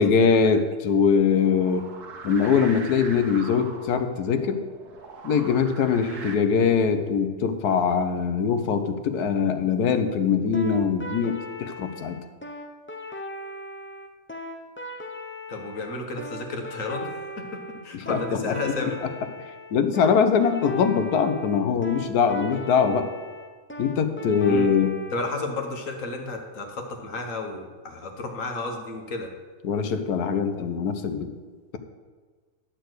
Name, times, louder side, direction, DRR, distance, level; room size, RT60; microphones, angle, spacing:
voice 1, 0.0-1.9 2.2-4.6 5.2-12.1 17.9-18.9 19.7-23.1 23.8-24.9 29.6-31.3, left 6 dB, 80° left, 8 dB, 1.3 m, -22 dB
sound 1, 1.3-6.3, right 4 dB, 80° right, 1.7 m, -41 dB
sound 2, 10.5-25.4, left 1 dB, 15° left, 0.4 m, -38 dB
voice 2, 15.5-19.0 24.4-24.7 25.1-29.3, left 2 dB, 55° left, 3 dB, 1.7 m, -32 dB
11.5 x 4.5 x 7.9 m, 1.5 s
omnidirectional pair, 1.6 m